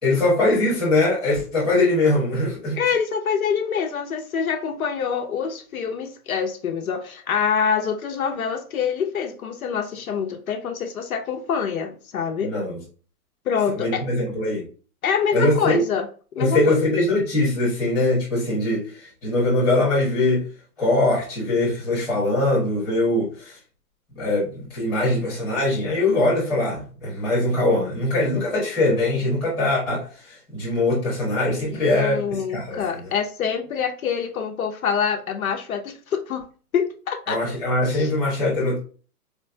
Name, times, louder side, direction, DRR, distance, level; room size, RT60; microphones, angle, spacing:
voice 1, 0.0-2.8 12.4-12.8 13.8-14.6 15.3-15.8 16.4-20.4 20.8-23.5 24.2-32.8 37.3-38.8, left 2 dB, ahead, 0.9 m, -22 dB
voice 2, 2.7-12.5 13.5-14.1 15.0-16.1 16.4-16.8 31.7-36.5 36.7-37.4 37.8-38.1, left 7 dB, 65° left, 0.6 m, -25 dB
4.4 x 2.2 x 2.6 m
hypercardioid pair, 175°, 46 cm